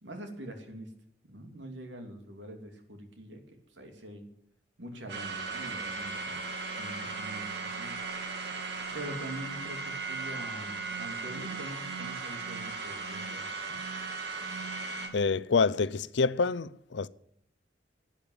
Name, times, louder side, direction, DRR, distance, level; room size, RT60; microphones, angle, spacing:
voice 1, 0.0-0.9 1.3-3.4 3.7-4.2 4.8-6.4 6.7-8.0 8.9-13.4, right 1 dB, 85° right, 2.7 m, -44 dB
sound 1, 5.1-15.1, right 4 dB, 65° right, 2.3 m, -37 dB
voice 2, 15.1-17.1, left 4 dB, 75° left, 0.5 m, -27 dB
12.0 x 8.8 x 9.5 m
head